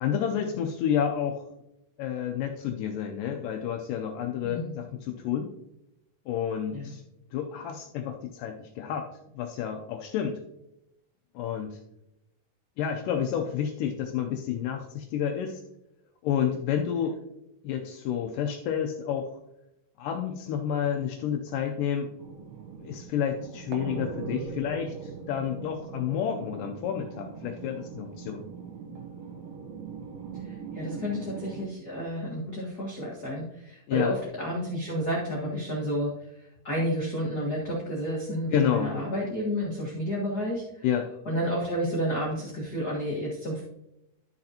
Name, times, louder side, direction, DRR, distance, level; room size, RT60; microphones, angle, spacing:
voice 1, 0.0-1.4 2.0-5.5 6.3-7.0 7.3-9.1 9.3-10.4 11.4-11.8 12.8-15.6 16.2-17.1 17.6-19.3 20.0-22.1 22.8-28.5 33.9-34.1 38.5-38.9 40.8-41.1, left 9 dB, 80° left, 3 dB, 2.2 m, -30 dB
voice 2, 4.4-4.7 6.7-6.9 30.4-36.1 36.4-40.8 41.2-43.6, equal, 45° left, -6 dB, 1.3 m, -31 dB
sound 1, 22.2-31.7, right 6 dB, 75° right, 2.4 m, -40 dB
12.0 x 6.5 x 2.8 m, 0.84 s
omnidirectional pair, 4.0 m